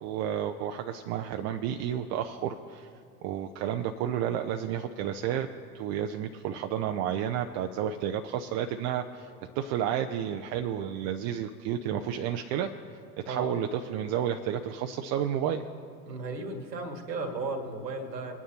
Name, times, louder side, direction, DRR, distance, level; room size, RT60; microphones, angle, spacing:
voice 1, 0.0-2.9 3.2-5.5 5.7-9.3 9.6-12.7 13.3-15.6, right 9 dB, 35° right, 5 dB, 0.5 m, -31 dB
voice 2, 16.0-18.4, right 3 dB, 75° right, 5 dB, 1.8 m, -35 dB
23.5 x 9.4 x 2.8 m, 2.4 s
figure-of-eight pair, 85°, 49 cm